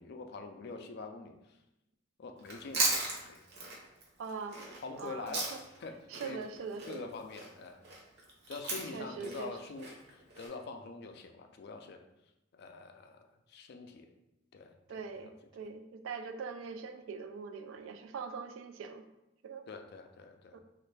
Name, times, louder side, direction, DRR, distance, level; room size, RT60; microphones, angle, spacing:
voice 1, 0.0-1.6 2.2-3.4 4.8-5.5 5.8-6.4 6.9-7.8 8.5-12.0 12.5-14.1 14.5-14.7 15.2-15.3 19.7-20.6, left 4 dB, 55° left, 5 dB, 0.3 m, -45 dB
Chewing mastication, 2.4-5.8 6.1-10.5, right 3 dB, 55° right, 0.7 m, -36 dB
voice 2, 4.2-4.7 5.0-5.6 6.1-7.1 8.9-9.9 14.9-19.0 19.4-19.7 20.5-20.6, right 5 dB, 70° right, 7 dB, 0.3 m, -42 dB
3.1 x 2.5 x 3.2 m, 0.92 s
head